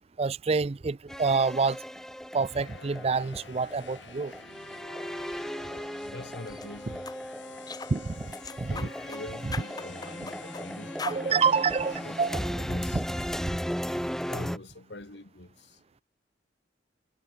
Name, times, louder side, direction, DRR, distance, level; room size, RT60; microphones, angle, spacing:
voice 1, 0.2-1.8 2.3-4.3 7.9-8.8 11.1-12.4 12.9-13.0, right 5 dB, 35° right, 0.4 m, -27 dB
sound 1, 1.1-14.6, equal, 5° left, 1.7 m, -36 dB
sound 2, 2.4-12.3, left 5 dB, 85° left, 5.4 m, -49 dB
voice 2, 6.1-7.1 8.7-11.4 12.0-13.4 14.3-15.8, left 2 dB, 65° left, 1.6 m, -44 dB
sound 3, 6.5-6.7 7.1-7.2 7.7-7.9 8.3-9.2 9.5-10.7 11.0-11.2, left 4 dB, 20° left, 0.9 m, -39 dB
head